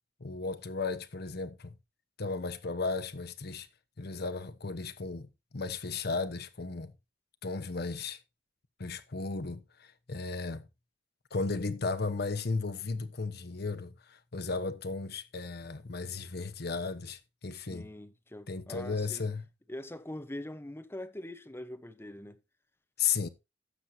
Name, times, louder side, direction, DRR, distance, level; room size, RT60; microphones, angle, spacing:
voice 1, 0.2-1.7 2.2-3.7 4.0-6.9 7.4-8.2 8.8-10.7 11.3-17.9 18.5-19.4 23.0-23.3, left 4 dB, 60° left, 0.9 m, -35 dB
voice 2, 17.5-19.2 19.7-22.4, left 1 dB, 15° left, 0.9 m, -43 dB
16.0 x 6.5 x 2.7 m
head